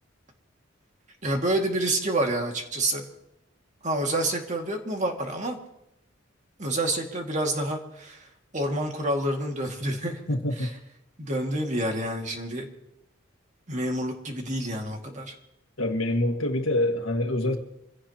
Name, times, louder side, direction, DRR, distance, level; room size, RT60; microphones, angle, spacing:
voice 1, 1.2-3.0 3.8-5.6 6.6-10.2 10.6-10.7 11.2-12.7 13.7-15.3, right 1 dB, 35° right, 2.1 m, -28 dB
voice 2, 10.3-10.7 15.8-17.6, left 1 dB, 80° left, 1.8 m, -25 dB
26.5 x 16.0 x 2.9 m
head